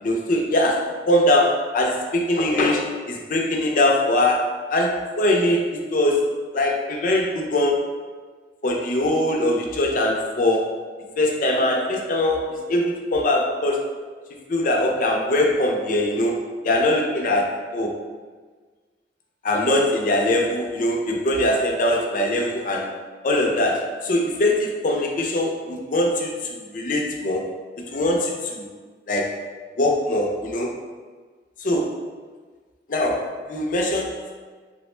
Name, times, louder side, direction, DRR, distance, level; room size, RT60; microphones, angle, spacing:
voice 1, 0.0-6.2 6.5-7.8 8.6-10.7 11.2-13.8 14.5-16.4 16.6-17.9 19.4-22.9 23.2-27.5 27.9-28.6 29.1-29.4 29.8-30.7 31.6-32.0 32.9-34.3, left 1 dB, 45° left, 0 dB, 0.4 m, -22 dB
3.5 x 2.1 x 3.1 m, 1.4 s
head